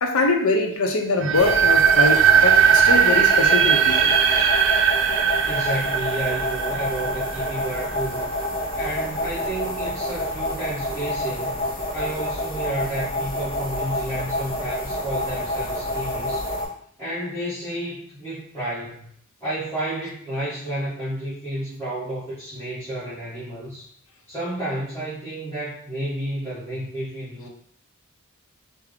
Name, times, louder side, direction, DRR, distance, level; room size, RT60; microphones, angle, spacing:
voice 1, 0.0-4.1, left 3 dB, 75° left, 4 dB, 0.6 m, -23 dB
sound 1, 1.2-8.1, right 7 dB, 60° right, 0.3 m, -19 dB
sound 2, 1.3-16.7, left 1 dB, 25° left, 0.8 m, -28 dB
voice 2, 5.4-8.3 8.7-11.6 11.9-16.5 17.0-19.1 19.4-23.9 24.3-27.5, right 1 dB, 10° left, -15 dB, 1.3 m, -31 dB
3.4 x 2.0 x 3.7 m, 0.67 s
head